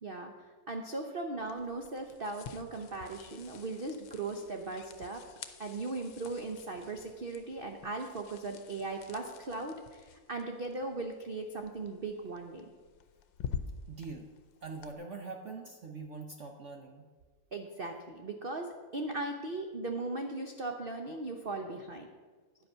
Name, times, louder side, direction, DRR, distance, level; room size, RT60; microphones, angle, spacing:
voice 1, 0.0-5.2 5.6-12.7 17.5-22.1, right 2 dB, 80° right, 3 dB, 0.5 m, -38 dB
sound 1, 1.4-14.9, left 7 dB, 75° left, 1.3 m, -48 dB
voice 2, 13.9-14.3 14.6-17.1, right 4 dB, 55° right, 3 dB, 0.8 m, -43 dB
10.5 x 8.0 x 5.6 m, 1.4 s
omnidirectional pair, 2.2 m